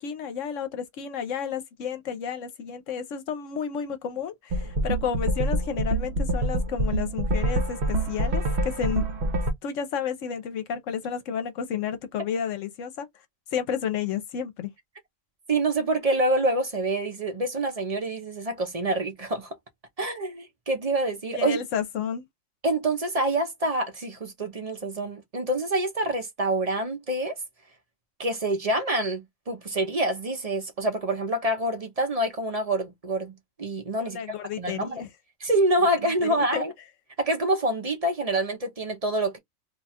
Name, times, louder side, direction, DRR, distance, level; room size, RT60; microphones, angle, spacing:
voice 1, 0.0-9.1 9.6-13.1 13.5-14.7 21.3-22.3 34.0-35.1 36.2-36.6, left 7 dB, 70° left, 1.0 m, -31 dB
sound 1, 4.5-9.5, right 1 dB, 60° right, 1.0 m, -26 dB
voice 2, 15.5-19.6 20.0-21.6 22.6-27.4 28.2-34.2 34.6-35.0 35.4-36.7 37.2-39.4, right 1 dB, 40° right, 0.6 m, -26 dB
2.6 x 2.3 x 4.1 m
omnidirectional pair, 1.4 m